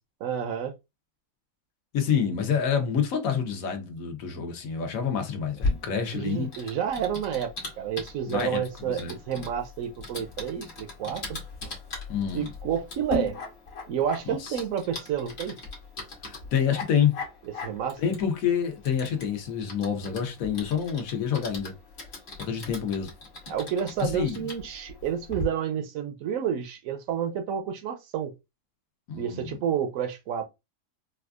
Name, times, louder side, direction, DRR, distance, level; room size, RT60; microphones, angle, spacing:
voice 1, 0.2-0.8 6.1-9.0 9.3-11.4 12.3-13.4 13.9-15.6 17.4-18.0 23.5-28.3 29.2-30.4, right 8 dB, 70° right, 0.9 m, -30 dB
voice 2, 1.9-6.5 8.3-9.1 12.1-12.5 14.3-14.6 16.2-17.2 18.0-21.7 22.4-23.1 24.0-24.4 29.1-29.5, left 7 dB, 70° left, 1.2 m, -27 dB
Typing, 5.6-25.4, left 2 dB, 50° left, 1.3 m, -39 dB
4.2 x 2.3 x 2.4 m
omnidirectional pair, 1.5 m